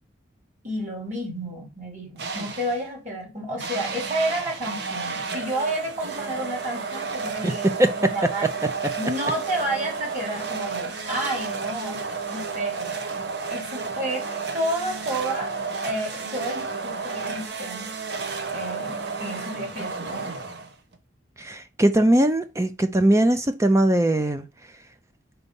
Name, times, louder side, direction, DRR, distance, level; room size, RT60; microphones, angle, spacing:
voice 1, 0.6-7.7 8.0-8.5 9.0-12.0 12.3-12.9 13.5-14.2 14.5-15.5 15.8-17.9 18.5-20.4, right 1 dB, 40° right, 3.2 m, -30 dB
sound 1, 2.2-2.9 3.6-20.9, right 4 dB, 60° right, 0.9 m, -32 dB
voice 2, 7.4-8.1 21.4-24.5, right 1 dB, 15° right, 0.5 m, -20 dB
4.6 x 4.1 x 5.3 m
head